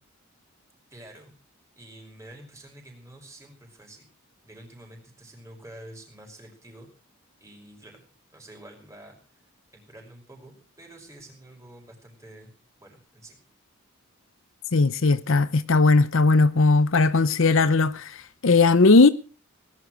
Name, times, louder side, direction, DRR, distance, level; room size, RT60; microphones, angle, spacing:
voice 1, 0.9-1.3 1.8-4.1 4.4-6.9 7.4-8.0 8.3-9.4 9.7-12.5 12.8-13.4, right 1 dB, 15° right, 5.6 m, -48 dB
voice 2, 14.7-19.1, left 3 dB, 60° left, 0.7 m, -18 dB
19.5 x 11.5 x 6.3 m
head